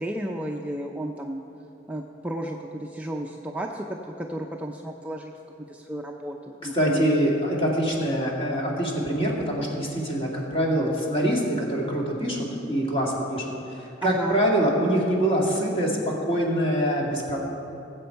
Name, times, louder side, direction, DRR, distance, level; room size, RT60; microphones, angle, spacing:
voice 1, 0.0-1.4 1.9-5.3 5.7-7.1 14.0-14.4, right 1 dB, 10° right, 1 dB, 0.5 m, -33 dB
voice 2, 6.7-17.4, equal, 30° left, -2 dB, 2.1 m, -24 dB
19.5 x 7.8 x 4.5 m, 2.8 s
head